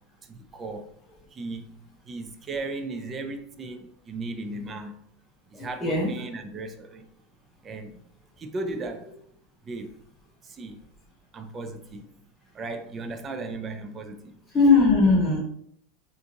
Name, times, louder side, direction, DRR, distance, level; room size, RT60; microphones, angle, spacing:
voice 1, 0.3-0.9 1.3-5.0 5.5-7.1 7.6-8.0 8.4-9.1 9.6-9.9 10.4-10.8 11.3-12.1 12.5-14.3, right 2 dB, 25° right, 7 dB, 0.4 m, -36 dB
voice 2, 5.5-6.1 14.5-15.4, left 3 dB, 10° left, -4 dB, 1.0 m, -19 dB
2.7 x 2.5 x 2.4 m, 0.66 s
supercardioid pair, 135°, 0 cm